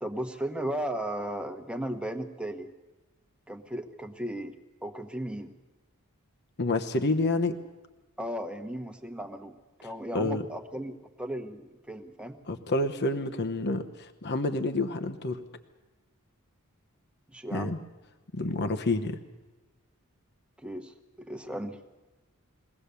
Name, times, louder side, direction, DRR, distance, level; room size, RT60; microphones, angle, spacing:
voice 1, 0.0-2.7 3.5-4.5 4.8-5.5 8.2-12.4 17.3-17.8 20.6-21.8, right 1 dB, 5° right, 5 dB, 1.2 m, -36 dB
voice 2, 6.6-7.5 10.1-10.5 12.5-15.4 17.5-17.8 18.3-19.2, left 2 dB, 50° left, 7 dB, 1.1 m, -28 dB
22.5 x 17.5 x 6.9 m, 1.2 s
head